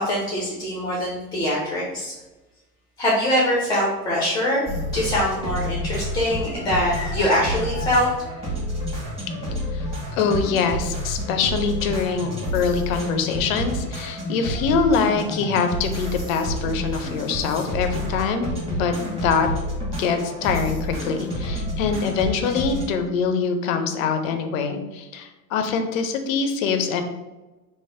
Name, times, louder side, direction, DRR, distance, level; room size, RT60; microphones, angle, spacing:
voice 1, 0.0-2.1 3.0-4.6 4.9-8.1, left 1 dB, 10° left, -4 dB, 0.6 m, -23 dB
sound 1, 4.7-22.8, equal, 10° right, 1.4 m, -29 dB
voice 2, 9.4-19.5 20.0-27.0, left 5 dB, 55° left, 6 dB, 0.6 m, -24 dB
3.2 x 2.2 x 3.4 m, 1.1 s
figure-of-eight pair, 85°, 48 cm